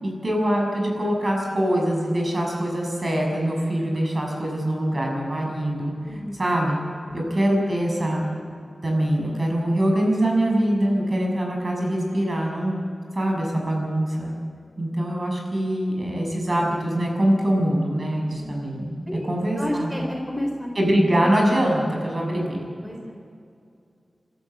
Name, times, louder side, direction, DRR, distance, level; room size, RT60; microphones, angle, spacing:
voice 1, 0.0-5.9 6.4-6.8 7.1-8.2 8.8-12.7 13.1-14.3 14.8-19.9 20.8-22.6, right 1 dB, 40° right, 0 dB, 6.6 m, -23 dB
voice 2, 6.0-6.4 7.1-7.2 18.3-18.5 19.1-20.7 22.2-22.3 22.8-23.1, equal, ahead, 0 dB, 3.8 m, -31 dB
26.5 x 13.5 x 7.9 m, 2.4 s
wide cardioid pair, 100°, 0 cm